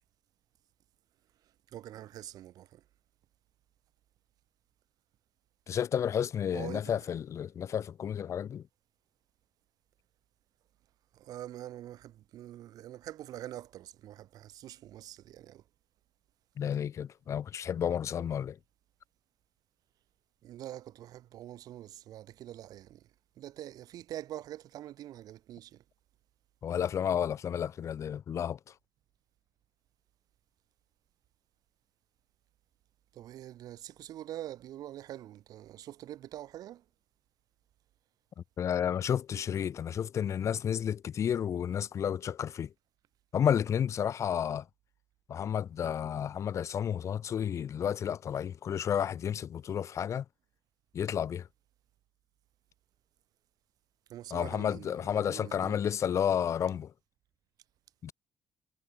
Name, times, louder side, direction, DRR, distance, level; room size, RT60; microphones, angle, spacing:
voice 1, 1.7-2.8 6.5-6.9 11.1-15.6 20.4-23.1 23.4-25.8 33.1-36.8 54.1-55.8, right 13 dB, 75° right, 3.9 m, -45 dB
voice 2, 5.7-8.6 16.6-18.6 26.6-28.6 38.6-42.7 43.3-44.6 45.3-50.2 50.9-51.5 54.3-56.9 58.0-58.1, left 8 dB, 50° left, 1.3 m, -31 dB
cardioid pair, 135°, 6 cm